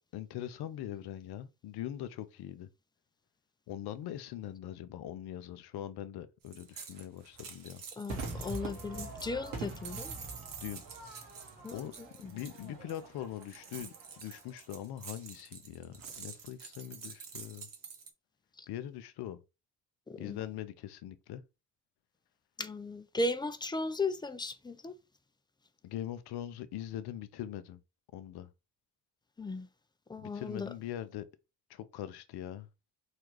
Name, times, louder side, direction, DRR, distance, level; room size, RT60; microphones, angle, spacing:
voice 1, 0.1-2.7 3.7-7.8 10.6-10.8 11.7-11.9 12.2-17.7 18.7-19.4 20.2-21.4 25.8-27.8 28.1-28.5 30.2-31.3 31.7-32.7, left 11 dB, 55° left, 0.6 m, -42 dB
sound 1, 6.5-18.1, right 6 dB, 45° right, 0.9 m, -48 dB
voice 2, 8.0-10.1 11.6-12.3 18.6-18.7 20.1-20.4 22.6-25.0 29.4-29.7 30.1-30.7, left 2 dB, 10° left, 0.3 m, -36 dB
Crowd / Fireworks, 8.1-14.6, right 3 dB, 85° right, 1.0 m, -44 dB
3.2 x 2.3 x 3.1 m
hypercardioid pair, 40°, 46 cm